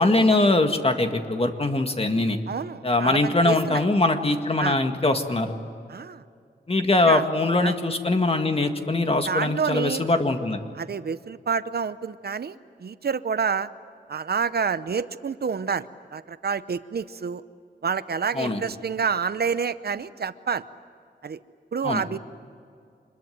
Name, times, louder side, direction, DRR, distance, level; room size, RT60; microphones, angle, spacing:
voice 1, 0.0-2.4 2.8-5.6 6.7-10.6 18.3-18.6 21.8-22.0, left 2 dB, 35° left, 6 dB, 1.9 m, -22 dB
voice 2, 2.5-3.8 4.6-4.8 5.9-6.2 7.1-7.2 7.6-7.8 9.3-10.0 10.7-13.7 14.1-17.4 17.8-20.6 21.2-21.4 21.7-22.2, right 6 dB, 65° right, 14 dB, 0.7 m, -28 dB
26.0 x 21.5 x 9.3 m, 2.3 s
wide cardioid pair, 110°, 18 cm